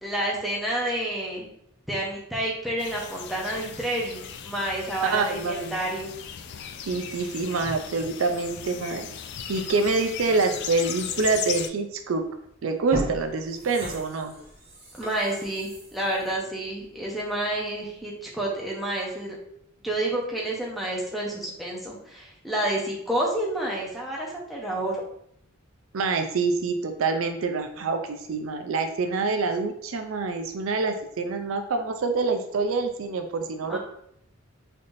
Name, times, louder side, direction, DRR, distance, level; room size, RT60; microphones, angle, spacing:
voice 1, 0.0-1.5 1.9-6.1 15.0-19.4 19.8-25.0 33.7-33.8, right 1 dB, ahead, -4 dB, 0.8 m, -29 dB
sound 1, 2.8-11.7, left 8 dB, 55° left, 0.3 m, -37 dB
voice 2, 5.0-5.8 6.9-9.1 9.5-12.2 12.6-14.3 25.9-33.8, right 4 dB, 75° right, 6 dB, 0.4 m, -26 dB
sound 2, 12.1-12.3 12.7-17.4 17.8-17.9, right 1 dB, 30° right, 1.1 m, -38 dB
4.0 x 3.3 x 2.6 m, 0.71 s
head